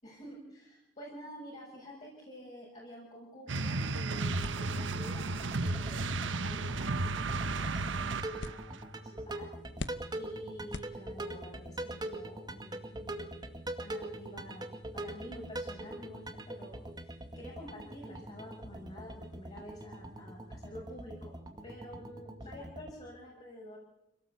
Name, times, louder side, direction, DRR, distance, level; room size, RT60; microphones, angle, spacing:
voice 1, 0.0-9.5 10.1-14.7 14.9-21.3 21.6-23.8, equal, 35° left, -3 dB, 6.6 m, -49 dB
sound 1, 3.5-8.6, right 3 dB, 80° right, 1.1 m, -33 dB
sound 2, 4.2-22.9, right 1 dB, 25° right, 2.2 m, -43 dB
sound 3, 4.4-11.5, left 3 dB, 70° left, 0.9 m, -48 dB
27.0 x 18.0 x 8.4 m, 0.90 s
head